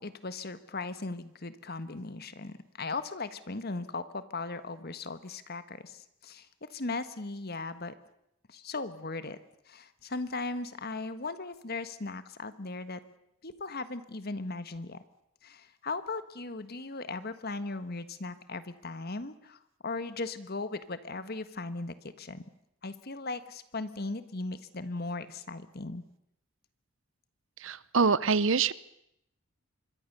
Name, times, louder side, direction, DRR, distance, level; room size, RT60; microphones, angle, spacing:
voice 1, 0.0-7.9 8.5-9.4 9.7-13.0 13.4-15.0 15.4-22.4 22.8-26.0, left 3 dB, 45° left, 12 dB, 1.4 m, -38 dB
voice 2, 27.6-28.7, right 5 dB, 60° right, 18 dB, 0.8 m, -25 dB
25.5 x 22.5 x 6.8 m, 0.78 s
head